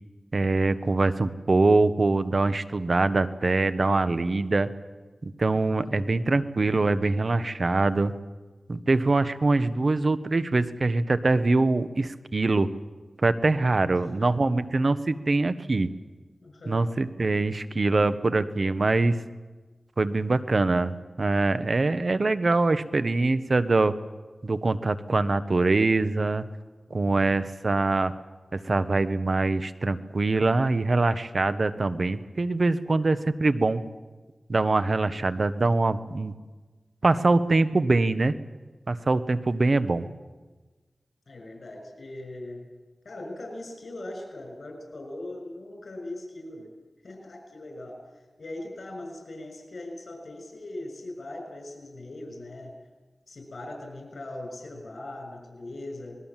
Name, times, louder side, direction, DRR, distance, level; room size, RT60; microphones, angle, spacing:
voice 1, 0.3-4.7 5.2-8.1 8.7-12.7 13.2-15.9 16.7-19.2 20.0-23.9 24.4-26.4 26.9-28.1 28.5-33.8 34.5-36.3 37.0-38.3 38.9-40.1, right 3 dB, 55° right, 12 dB, 1.2 m, -23 dB
voice 2, 13.9-14.3 16.4-16.9 41.3-42.6 43.0-46.7 47.0-52.7 53.3-56.2, left 1 dB, 75° left, 3 dB, 6.4 m, -40 dB
26.0 x 21.0 x 7.5 m, 1.3 s
wide cardioid pair, 60°, 0 cm